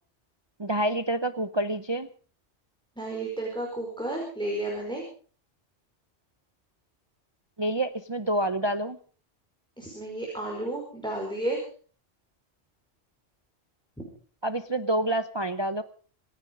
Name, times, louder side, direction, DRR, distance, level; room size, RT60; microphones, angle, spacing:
voice 1, 0.6-2.1 7.6-9.0 14.4-15.8, right 1 dB, 25° right, 11 dB, 0.7 m, -27 dB
voice 2, 3.0-5.0 9.8-11.6 14.0-14.1, right 1 dB, 5° left, -1 dB, 4.9 m, -32 dB
26.0 x 10.0 x 5.3 m, 0.42 s
omnidirectional pair, 1.2 m